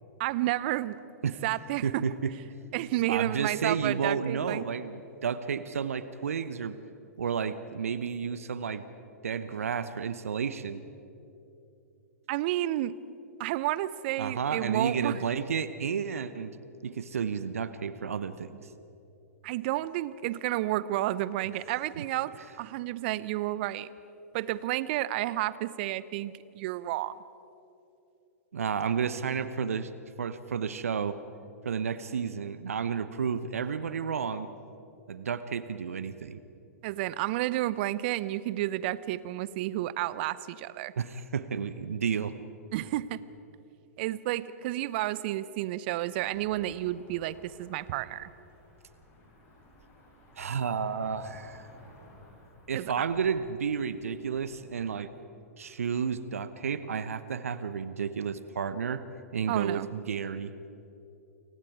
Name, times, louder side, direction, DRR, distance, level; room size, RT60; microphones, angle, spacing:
voice 1, 0.2-1.0 1.4-2.1 2.7-4.7 12.3-13.0 13.4-15.2 19.4-23.9 24.3-27.2 36.8-40.9 42.7-43.2 44.0-48.3 52.7-53.1 59.5-59.9, right 15 dB, 45° right, 17 dB, 0.8 m, -31 dB
voice 2, 1.8-2.3 3.1-6.8 7.2-8.8 9.2-10.8 14.2-16.5 16.8-18.7 28.5-29.9 30.2-31.2 31.6-34.5 35.1-36.4 41.0-42.3 50.4-51.6 52.7-55.1 55.6-59.0 59.3-60.5, right 6 dB, 70° right, 13 dB, 1.0 m, -31 dB
Cricket / Motor vehicle (road), 46.1-54.8, left 1 dB, 30° left, 7.6 m, -56 dB
29.5 x 25.0 x 4.8 m, 2.8 s
figure-of-eight pair, 105°, 8 cm